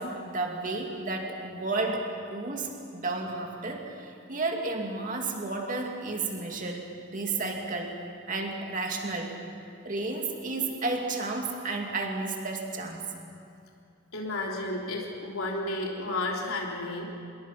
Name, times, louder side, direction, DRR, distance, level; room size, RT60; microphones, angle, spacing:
voice 1, 0.0-6.9 7.1-8.0 8.3-9.3 9.8-13.0, right 3 dB, 40° right, 1 dB, 2.6 m, -32 dB
voice 2, 14.1-17.1, left 2 dB, 80° left, -2 dB, 3.6 m, -32 dB
27.5 x 22.0 x 5.8 m, 2.5 s
head